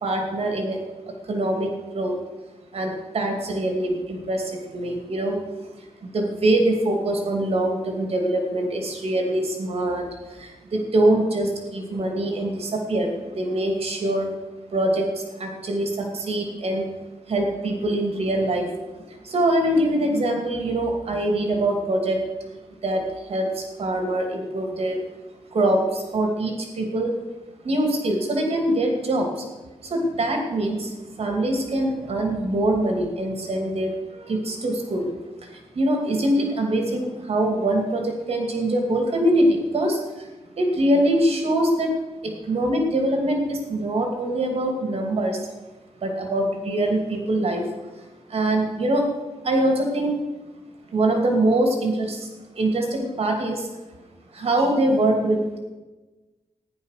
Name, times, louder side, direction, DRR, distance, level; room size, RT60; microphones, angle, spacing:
voice 1, 0.0-0.8 1.2-2.1 2.7-5.4 6.0-14.3 14.7-16.9 17.3-18.7 19.2-22.2 22.8-25.0 25.5-27.1 27.6-29.4 29.8-35.1 35.4-40.3 40.6-41.9 42.2-45.4 46.0-47.6 48.3-49.0 49.4-50.1 50.9-52.3 52.5-53.7 54.3-55.6, right 1 dB, 60° right, 3 dB, 2.6 m, -23 dB
14.5 x 10.5 x 6.6 m, 1.2 s
wide cardioid pair, 165°, 11 cm